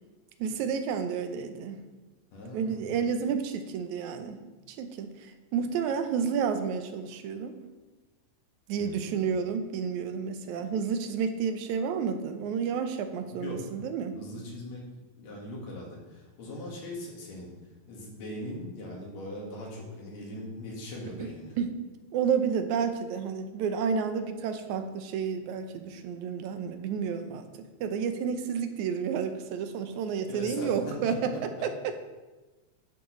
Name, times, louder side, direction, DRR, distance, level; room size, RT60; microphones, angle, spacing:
voice 1, 0.4-1.8 2.5-4.4 4.7-5.1 5.5-7.6 8.7-14.2 21.6-21.7 22.1-27.5 27.8-31.3 31.6-31.7, right 6 dB, 85° right, 8 dB, 2.1 m, -30 dB
voice 2, 2.3-3.0 8.8-9.3 13.4-13.6 14.1-14.8 15.2-17.5 17.9-21.6 30.3-31.2, left 1 dB, 70° left, -2 dB, 3.0 m, -40 dB
12.0 x 6.2 x 3.1 m, 1.2 s
omnidirectional pair, 3.3 m